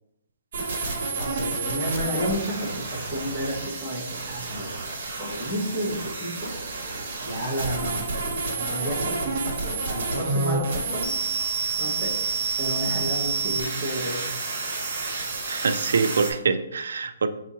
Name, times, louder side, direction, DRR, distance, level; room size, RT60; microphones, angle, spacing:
sound 1, 0.5-16.3, right 4 dB, 40° right, 1.1 m, -29 dB
voice 1, 1.1-4.7 5.2-6.6 7.2-8.0 8.5-11.2 11.8-12.2 12.6-14.4, equal, ahead, -10 dB, 1.1 m, -31 dB
voice 2, 15.5-17.3, right 5 dB, 70° right, 10 dB, 0.4 m, -24 dB
4.4 x 2.4 x 4.1 m, 0.84 s
hypercardioid pair, 170°, 0 cm